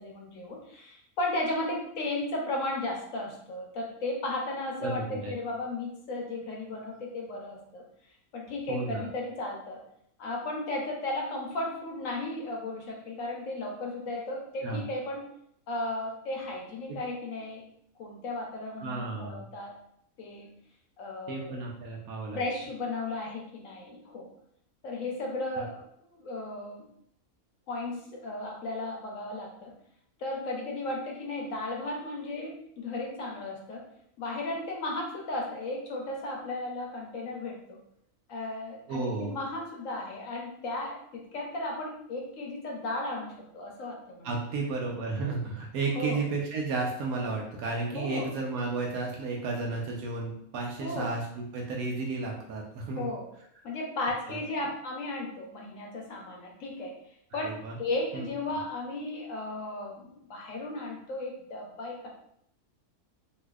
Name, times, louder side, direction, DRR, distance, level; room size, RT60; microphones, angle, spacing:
voice 1, 0.0-7.8 8.3-9.8 10.2-15.3 15.7-17.6 18.0-19.7 20.2-20.5 21.0-21.6 22.3-24.3 24.8-25.8 26.1-26.8 27.7-29.7 30.2-33.8 34.2-37.8 38.3-44.3 45.9-46.2 47.9-48.3 50.8-51.1 53.0-53.3 53.6-57.0 57.3-62.1, left 2 dB, 65° left, -1 dB, 1.1 m, -35 dB
voice 2, 4.8-5.3 8.7-9.1 14.6-14.9 18.8-19.5 21.3-22.4 25.6-25.7 38.9-39.4 44.2-53.1 54.3-54.4 57.3-57.8 58.1-58.3, right 3 dB, 85° right, -1 dB, 1.1 m, -33 dB
4.0 x 2.7 x 2.3 m, 0.69 s
omnidirectional pair, 1.5 m